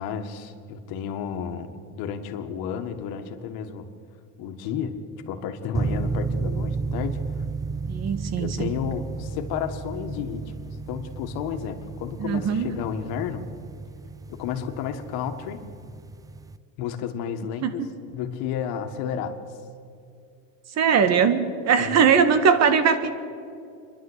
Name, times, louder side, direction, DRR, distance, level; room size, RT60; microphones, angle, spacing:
voice 1, 0.0-3.9 4.4-5.0 5.3-7.4 8.4-13.5 14.3-15.7 16.8-19.3 21.8-22.0, left 8 dB, 75° left, 7 dB, 1.9 m, -32 dB
sound 1, 5.7-16.6, right 4 dB, 10° right, 0.4 m, -33 dB
voice 2, 7.9-8.7 12.2-12.7 17.6-17.9 20.7-23.1, right 6 dB, 45° right, 10 dB, 1.8 m, -20 dB
27.5 x 11.5 x 8.3 m, 2.5 s
cardioid pair, 130°, 36 cm